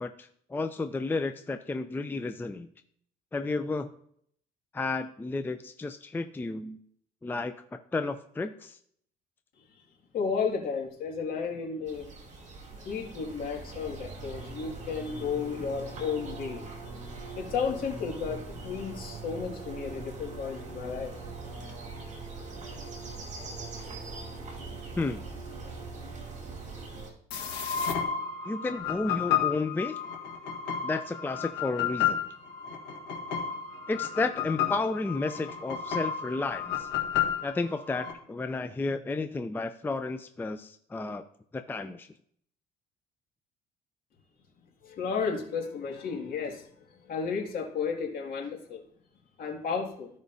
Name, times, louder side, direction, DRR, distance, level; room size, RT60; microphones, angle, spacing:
voice 1, 0.0-2.7 3.3-3.9 4.7-6.8 7.2-8.8 25.0-25.3 28.5-30.0 30.8-32.2 33.9-36.9 37.4-41.2 41.5-42.1, left 3 dB, 10° left, 8 dB, 0.4 m, -32 dB
voice 2, 10.1-12.1 12.8-16.6 17.1-21.6 44.8-46.7 47.0-48.8 49.4-50.1, left 5 dB, 60° left, 0 dB, 2.2 m, -33 dB
sound 1, 11.9-27.1, right 3 dB, 45° right, 2.2 m, -41 dB
sound 2, 27.3-38.1, left 8 dB, 90° left, 1.6 m, -32 dB
15.0 x 5.0 x 2.7 m, 0.64 s
cardioid pair, 110°, 17 cm